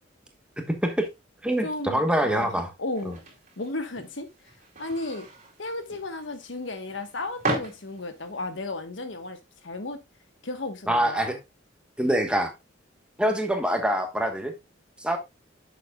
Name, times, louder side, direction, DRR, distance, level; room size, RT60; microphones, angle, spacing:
voice 1, 0.6-1.1 1.4-2.7 10.9-11.4 12.0-12.5 13.2-14.5 15.0-15.2, right 1 dB, 5° right, 1.2 m, -25 dB
voice 2, 1.6-2.5 2.8-3.2 3.6-4.3 4.8-5.3 5.6-9.4 9.6-10.0 10.4-11.4, left 2 dB, 75° left, 1.3 m, -34 dB
sound 1, 2.9-8.3, right 2 dB, 40° right, 2.6 m, -36 dB
10.0 x 6.9 x 2.4 m
head